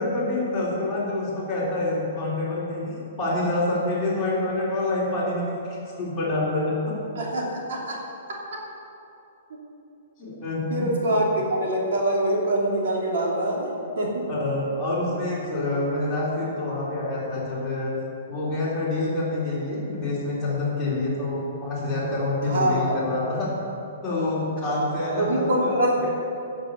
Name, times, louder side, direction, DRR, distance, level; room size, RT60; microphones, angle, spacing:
voice 1, 0.0-6.9 10.2-10.9 14.3-17.9 18.3-23.5 24.0-25.7, left 2 dB, 5° left, -12 dB, 3.6 m, -27 dB
voice 2, 7.2-8.0 9.5-9.6 10.7-13.7 14.0-14.3 22.4-23.1 24.6-24.7 25.2-26.1, right 1 dB, 55° right, -3 dB, 2.9 m, -24 dB
15.5 x 6.8 x 7.1 m, 2.8 s
hypercardioid pair, 180°, 0 cm